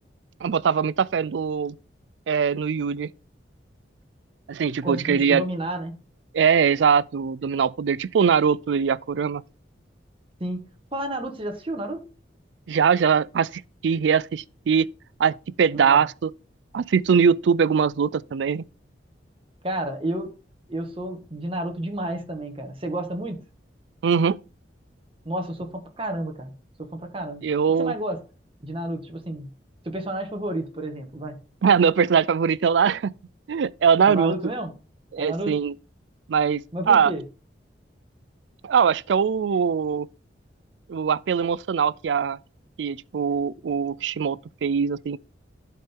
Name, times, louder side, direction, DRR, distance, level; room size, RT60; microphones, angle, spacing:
voice 1, 0.4-1.7 2.3-3.1 4.5-5.4 6.3-9.4 12.7-14.9 15.2-16.3 16.7-18.6 24.0-24.4 27.4-27.9 31.6-33.1 33.5-34.3 35.1-35.7 36.3-37.1 38.6-40.1 40.9-42.4 42.8-45.2, right 6 dB, 85° right, 0.4 m, -22 dB
voice 2, 4.8-6.0 10.4-12.0 15.7-16.0 19.6-20.3 20.7-23.4 25.2-26.5 26.8-27.4 27.8-28.2 28.6-29.5 29.8-31.4 34.0-34.7 35.2-35.5 36.7-37.2, right 1 dB, 30° right, 1.5 m, -31 dB
11.5 x 4.4 x 3.7 m
head